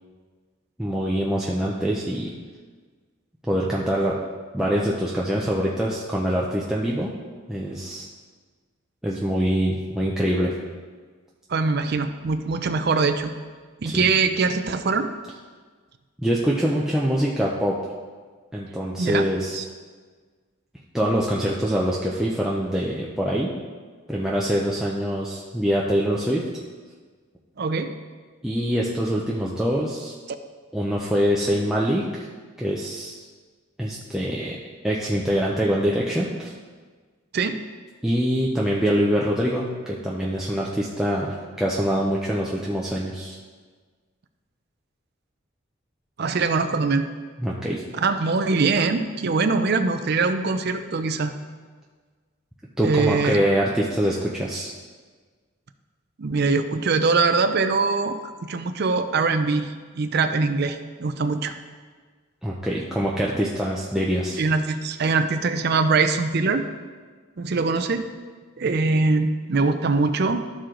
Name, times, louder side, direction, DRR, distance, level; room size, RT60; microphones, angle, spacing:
voice 1, 0.8-2.3 3.5-4.2 4.5-7.1 7.5-8.1 9.0-10.5 13.9-14.0 16.2-17.8 18.5-19.6 20.9-23.5 24.1-26.5 28.4-30.1 30.7-32.3 32.6-33.2 33.8-34.6 34.8-36.5 38.0-43.4 47.4-47.8 52.8-54.7 62.4-64.4, equal, ahead, -5 dB, 0.6 m, -24 dB
voice 2, 11.5-13.3 13.8-15.1 19.0-19.3 19.5-19.6 27.6-27.9 37.3-37.6 46.2-47.1 47.9-51.3 52.8-53.4 56.2-61.5 64.4-66.7 67.4-68.1 68.6-70.5, right 4 dB, 50° right, 8 dB, 0.5 m, -22 dB
13.0 x 4.7 x 3.8 m, 1.5 s
head